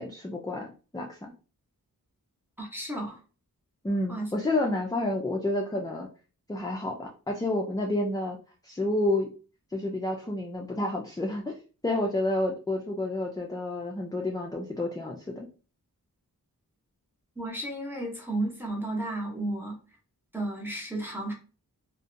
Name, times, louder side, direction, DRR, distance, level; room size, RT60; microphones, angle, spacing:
voice 1, 0.0-1.3 3.8-6.1 6.5-8.4 8.6-9.3 9.7-11.6 11.8-15.5, left 1 dB, 10° left, 0 dB, 0.3 m, -30 dB
voice 2, 2.6-3.2 4.1-4.3 17.4-19.8 20.3-21.3, right 1 dB, 5° right, -1 dB, 0.8 m, -33 dB
2.6 x 2.1 x 2.5 m, 0.36 s
wide cardioid pair, 70°, 37 cm